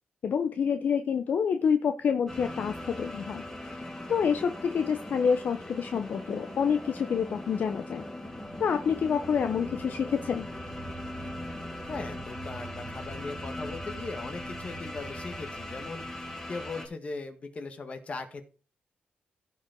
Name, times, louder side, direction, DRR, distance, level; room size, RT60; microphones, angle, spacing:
voice 1, 0.2-8.0 8.6-10.5, left 6 dB, 60° left, 8 dB, 0.8 m, -28 dB
sound 1, 2.3-16.9, left 1 dB, 15° left, 3.2 m, -39 dB
voice 2, 11.9-18.4, left 3 dB, 40° left, 7 dB, 1.7 m, -39 dB
16.5 x 5.5 x 3.9 m, 0.35 s
wide cardioid pair, 125°, 3 cm